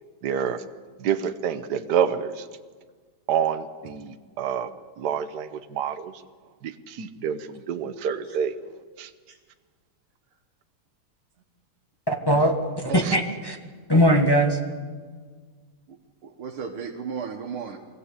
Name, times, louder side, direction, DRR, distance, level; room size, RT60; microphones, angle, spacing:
voice 1, 0.2-0.6 1.0-2.5 3.3-4.7 5.0-6.2 6.6-8.5 9.0-9.1 13.0-13.2, right 8 dB, 55° right, 9 dB, 1.4 m, -28 dB
voice 2, 12.1-13.6 13.9-14.6, equal, 10° left, 1 dB, 1.5 m, -20 dB
voice 3, 16.2-17.8, right 6 dB, 85° right, 1 dB, 2.2 m, -34 dB
24.0 x 16.0 x 8.3 m, 1.5 s
omnidirectional pair, 2.3 m